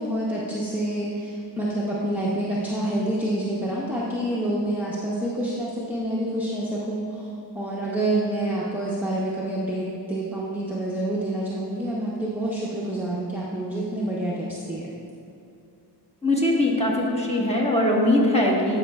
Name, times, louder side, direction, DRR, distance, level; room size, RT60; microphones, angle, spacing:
voice 1, 0.0-14.8, right 1 dB, 5° right, -7 dB, 0.8 m, -27 dB
voice 2, 16.2-18.8, left 1 dB, 15° left, -4 dB, 1.3 m, -21 dB
11.5 x 5.6 x 2.3 m, 2.6 s
wide cardioid pair, 55°, 43 cm